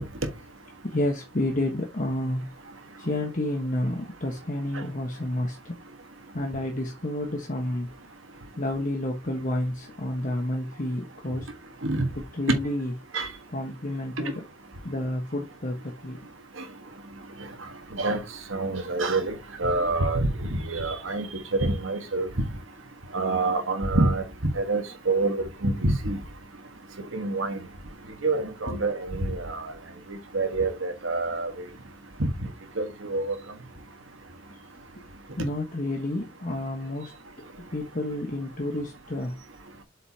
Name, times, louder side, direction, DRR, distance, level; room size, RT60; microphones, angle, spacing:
voice 1, 0.8-2.5 3.0-5.7 6.3-7.9 8.6-11.5 12.1-12.9 13.5-14.4 14.8-16.2 28.7-28.8 30.6-30.7 35.4-37.1 37.7-39.4, left 1 dB, 40° left, 1.3 m, -30 dB
voice 2, 18.5-19.3 19.6-21.3 21.5-22.3 23.1-24.2 24.5-26.2 27.1-27.6 28.2-29.7 30.1-31.6 32.2-32.3 32.8-33.3, right 2 dB, 75° right, 1.5 m, -26 dB
7.9 x 5.3 x 2.8 m
head